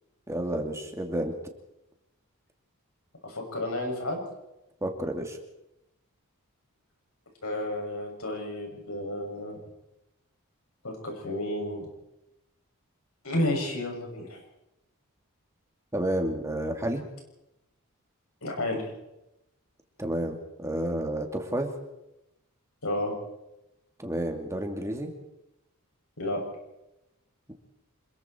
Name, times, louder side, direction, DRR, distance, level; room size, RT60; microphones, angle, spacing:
voice 1, 0.3-1.3 4.8-5.4 15.9-17.0 20.0-21.7 24.0-25.1, right 1 dB, 15° right, 3 dB, 2.6 m, -30 dB
voice 2, 3.2-4.2 7.4-9.6 10.8-11.9 13.2-14.4 18.4-18.8 22.8-23.1 26.2-26.4, left 1 dB, 75° left, 1 dB, 7.2 m, -31 dB
26.5 x 22.0 x 4.6 m, 0.89 s
head